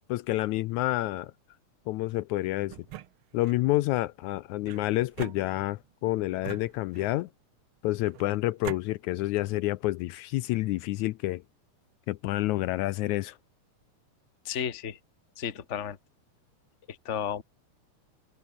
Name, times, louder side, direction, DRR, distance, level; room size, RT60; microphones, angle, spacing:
voice 1, 0.1-1.3 1.9-2.8 3.3-7.3 7.8-11.4 12.1-13.4, left 17 dB, 80° left, 1.9 m, -29 dB
sound 1, 2.7-3.6 4.6-5.9 6.4-7.3 8.0-8.8, right 13 dB, 85° right, 1.1 m, -43 dB
voice 2, 14.4-15.0 15.4-16.0 16.9-17.4, left 8 dB, 35° left, 1.3 m, -33 dB
omnidirectional pair, 3.6 m